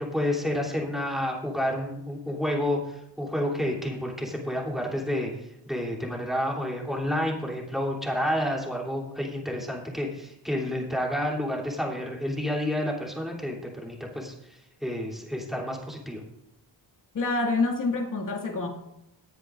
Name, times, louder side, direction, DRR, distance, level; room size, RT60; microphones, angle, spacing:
voice 1, 0.0-16.2, left 1 dB, ahead, -3 dB, 3.2 m, -30 dB
voice 2, 17.1-18.7, left 3 dB, 45° left, 1 dB, 2.2 m, -27 dB
18.5 x 9.9 x 2.6 m, 0.83 s
wide cardioid pair, 120°, 44 cm